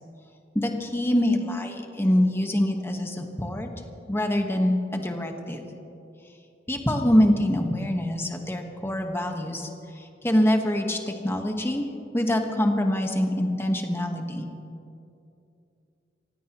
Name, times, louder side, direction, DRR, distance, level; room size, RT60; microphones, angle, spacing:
voice 1, 0.5-3.7 4.1-5.7 6.7-11.9 12.1-14.5, left 1 dB, 15° left, 3 dB, 1.3 m, -25 dB
27.0 x 16.0 x 3.0 m, 2.7 s
head